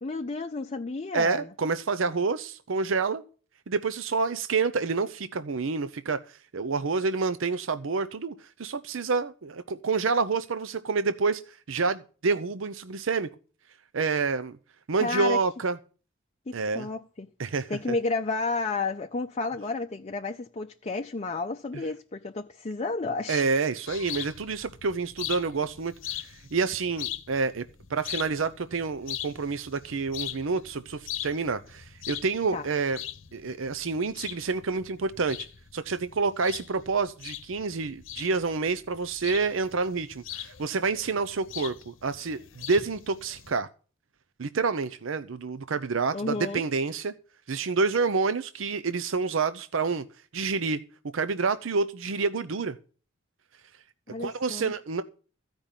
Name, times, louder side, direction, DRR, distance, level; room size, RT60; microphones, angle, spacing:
voice 1, 0.0-1.5 15.0-15.4 16.5-17.3 17.7-23.4 32.5-32.7 46.1-46.6 54.1-54.7, left 3 dB, 35° left, 0.6 m, -31 dB
voice 2, 1.1-3.2 3.7-6.2 6.5-13.3 13.9-14.6 14.9-15.8 16.5-16.9 17.4-17.7 23.3-25.9 26.3-27.6 27.9-33.0 33.3-35.5 35.7-43.7 44.4-47.1 47.5-50.0 50.3-50.8 51.1-52.8 54.2-55.0, right 4 dB, 75° right, 0.6 m, -28 dB
sound 1, 23.9-43.6, left 11 dB, 75° left, 0.8 m, -41 dB
15.0 x 5.3 x 8.9 m
head